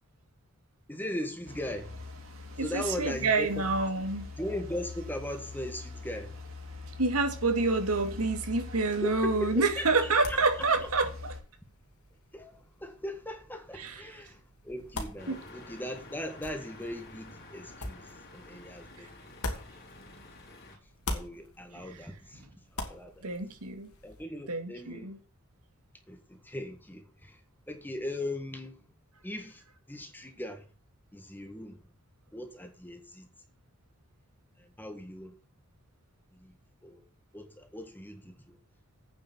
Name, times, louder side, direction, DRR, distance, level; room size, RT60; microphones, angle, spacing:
voice 1, 0.9-2.0 2.6-3.7 4.4-6.4 9.0-10.4 12.3-19.1 21.1-23.3 24.0-25.1 26.1-28.8 29.2-30.7 31.1-31.8 32.3-33.3 34.6-35.4 36.3-36.6 36.8-37.0 37.3-38.6, left 1 dB, 10° left, 1.6 m, -39 dB
sound 1, 1.4-11.4, left 3 dB, 60° right, 3.4 m, -43 dB
voice 2, 2.6-4.3 7.0-11.3 13.8-13.9 15.3-15.4 19.0-19.1 23.2-23.9 24.5-25.2, right 3 dB, 90° right, 2.2 m, -28 dB
sound 2, 9.3-20.5 20.8-24.2, left 2 dB, 85° left, 2.7 m, -44 dB
sound 3, 15.2-20.8, left 2 dB, 45° left, 3.5 m, -50 dB
9.1 x 6.8 x 7.4 m
head